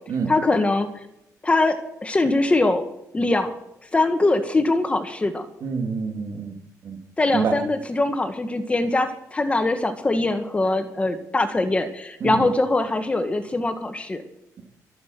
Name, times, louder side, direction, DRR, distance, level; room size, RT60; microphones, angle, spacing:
voice 1, 0.3-0.9 1.4-2.9 3.1-3.5 3.9-5.5 7.2-14.2, left 2 dB, 20° left, 8 dB, 1.5 m, -22 dB
voice 2, 5.6-6.5 6.8-7.0 7.3-7.6 12.2-12.4, right 5 dB, 55° right, 4 dB, 3.2 m, -26 dB
24.0 x 8.6 x 6.1 m, 0.83 s
cardioid pair, 145°, 7 cm